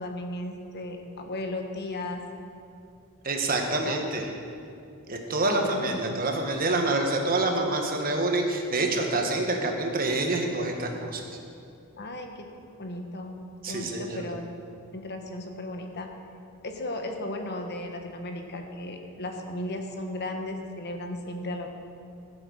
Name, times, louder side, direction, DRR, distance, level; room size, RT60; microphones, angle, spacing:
voice 1, 0.0-2.2 3.8-4.0 5.4-6.0 12.0-12.5 12.8-13.4 13.7-14.4 14.9-16.1 16.6-21.7, left 1 dB, 50° left, 4 dB, 1.3 m, -35 dB
voice 2, 3.2-4.3 5.1-11.2 13.6-14.3, right 2 dB, 45° right, 2 dB, 1.5 m, -27 dB
15.5 x 7.9 x 6.4 m, 2.6 s
head